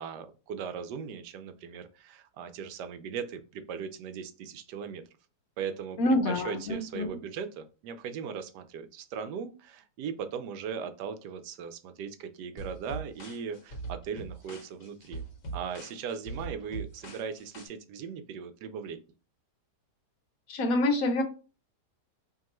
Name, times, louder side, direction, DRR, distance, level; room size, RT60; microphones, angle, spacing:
voice 1, 0.0-5.0 5.6-15.2 15.5-19.0, right 7 dB, 80° right, 9 dB, 1.2 m, -38 dB
voice 2, 6.0-7.1 20.5-21.2, left 1 dB, 65° left, 4 dB, 1.1 m, -26 dB
sound 1, 12.6-17.7, right 3 dB, 50° left, 1.5 m, -41 dB
4.7 x 2.9 x 3.0 m, 0.34 s
omnidirectional pair, 1.8 m